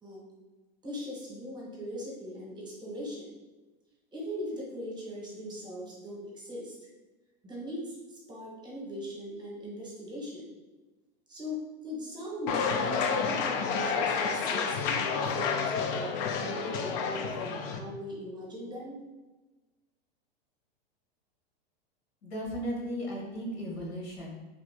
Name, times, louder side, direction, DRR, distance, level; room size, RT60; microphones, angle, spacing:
voice 1, 0.8-3.3 4.1-6.7 7.4-10.5 11.3-19.0, equal, 15° right, -3 dB, 1.0 m, -40 dB
sound 1, 12.5-17.8, left 5 dB, 45° left, 0.4 m, -30 dB
voice 2, 22.2-24.4, equal, 85° left, -3 dB, 1.5 m, -36 dB
3.1 x 2.4 x 3.3 m, 1.2 s
hypercardioid pair, 120°, 31 cm